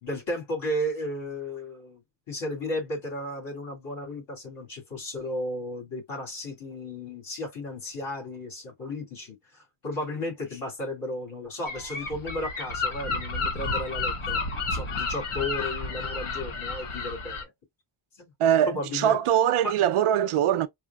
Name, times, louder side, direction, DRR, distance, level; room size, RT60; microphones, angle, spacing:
voice 1, 0.0-2.0 2.3-14.4 14.7-17.5 18.2-18.3 18.7-19.2 19.6-19.7, left 1 dB, 65° left, 2.4 m, -34 dB
Gull seagull, 11.7-17.4, left 3 dB, 80° left, 1.5 m, -31 dB
voice 2, 18.4-20.7, right 10 dB, 85° right, 0.6 m, -22 dB
4.8 x 2.0 x 2.2 m
wide cardioid pair, 145°, 49 cm